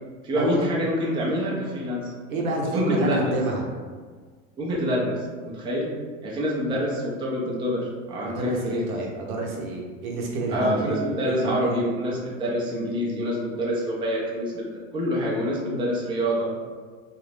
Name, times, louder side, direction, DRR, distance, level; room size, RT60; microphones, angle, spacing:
voice 1, 0.2-2.1 2.7-3.3 4.6-5.9 6.2-8.9 10.5-16.5, equal, 10° right, -5 dB, 0.4 m, -26 dB
voice 2, 2.3-3.7 8.3-11.9, right 2 dB, 80° right, -1 dB, 0.8 m, -28 dB
2.5 x 2.0 x 3.2 m, 1.5 s
hypercardioid pair, 110°, 41 cm